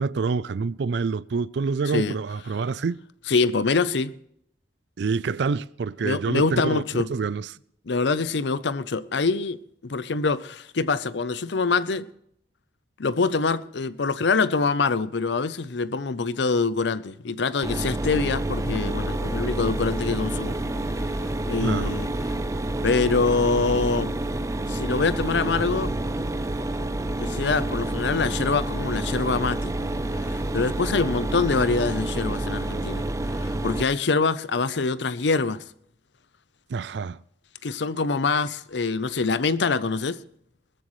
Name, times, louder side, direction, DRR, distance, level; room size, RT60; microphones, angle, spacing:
voice 1, 0.0-3.0 5.0-7.5 21.6-21.9 36.7-37.2, right 4 dB, 65° right, 0.4 m, -27 dB
voice 2, 1.9-2.2 3.3-4.1 6.0-7.1 7.9-12.1 13.0-20.6 20.9-21.1 21.5-22.3 22.8-24.2 24.7-26.0 27.2-29.7 30.2-33.1 33.3-35.6 37.6-40.2, left 4 dB, 70° left, 0.6 m, -25 dB
Mechanisms, 17.6-33.8, right 1 dB, 15° right, 0.6 m, -28 dB
20.0 x 13.5 x 3.2 m
head